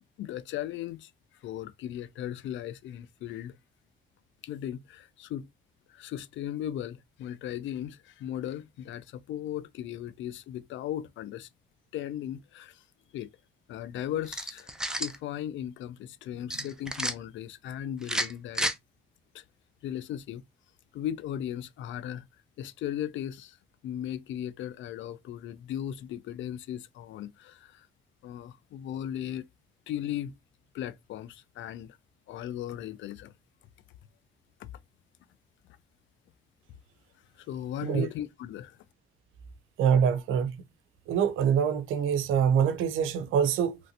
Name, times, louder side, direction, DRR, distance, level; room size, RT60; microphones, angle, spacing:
voice 1, 0.2-1.1 1.4-3.6 4.4-5.5 5.9-11.5 11.9-12.8 13.1-13.3 13.7-18.7 19.3-19.4 19.8-20.4 20.9-22.3 22.6-23.6 23.8-27.9 28.2-29.5 29.9-30.3 30.7-32.0 32.3-33.3 34.6-34.7 37.4-38.8, left 11 dB, 70° left, 0.4 m, -37 dB
sound 1, 14.2-15.2 16.5-17.1 18.0-18.7, right 1 dB, 5° right, 0.4 m, -31 dB
voice 2, 39.8-40.5 41.1-43.8, right 7 dB, 90° right, 0.5 m, -25 dB
3.1 x 2.5 x 2.7 m
cardioid pair, 90°, 20 cm